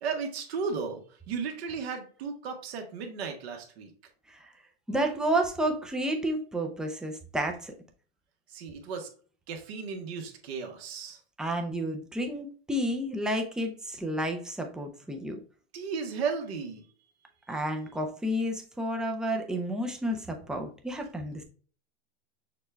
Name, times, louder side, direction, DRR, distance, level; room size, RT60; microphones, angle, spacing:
voice 1, 0.0-3.9 8.5-9.1 9.5-11.2 15.7-16.8, right 5 dB, 70° right, 4 dB, 1.2 m, -35 dB
voice 2, 4.9-7.7 11.4-15.4 17.5-21.4, right 1 dB, ahead, 3 dB, 0.3 m, -31 dB
6.5 x 2.3 x 3.2 m, 0.41 s
supercardioid pair, 135°, 33 cm